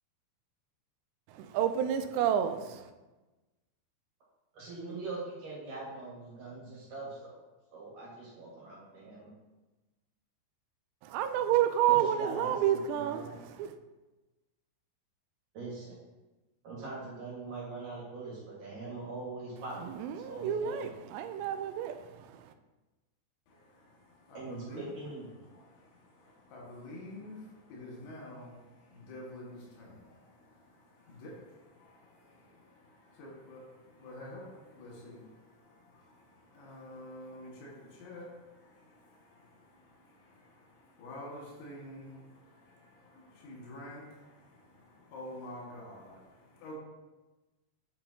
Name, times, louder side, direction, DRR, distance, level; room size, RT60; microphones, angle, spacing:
voice 1, 1.3-2.9 11.0-13.7 19.8-22.5, right 10 dB, 85° right, 8 dB, 2.7 m, -30 dB
voice 2, 4.5-7.3 7.7-9.3 11.9-13.4 15.5-15.9 16.6-19.9 20.2-20.9 24.3-25.5, right 3 dB, 55° right, -6 dB, 2.9 m, -42 dB
voice 3, 23.5-24.9 25.4-46.8, left 1 dB, 85° left, -4 dB, 4.2 m, -49 dB
11.0 x 5.2 x 2.8 m, 1.1 s
omnidirectional pair, 5.1 m